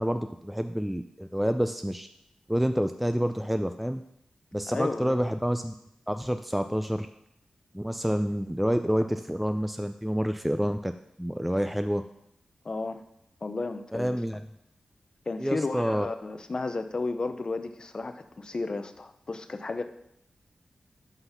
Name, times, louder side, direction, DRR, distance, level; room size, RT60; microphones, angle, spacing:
voice 1, 0.0-2.1 2.5-4.0 4.5-5.7 6.1-7.1 7.7-10.9 11.2-12.0 13.9-14.4 15.4-16.1, equal, 5° right, 8 dB, 0.3 m, -28 dB
voice 2, 4.7-5.2 12.6-13.0 13.4-14.2 15.3-19.8, left 3 dB, 40° left, 9 dB, 0.6 m, -33 dB
6.0 x 5.6 x 5.7 m, 0.76 s
wide cardioid pair, 80°, 2 cm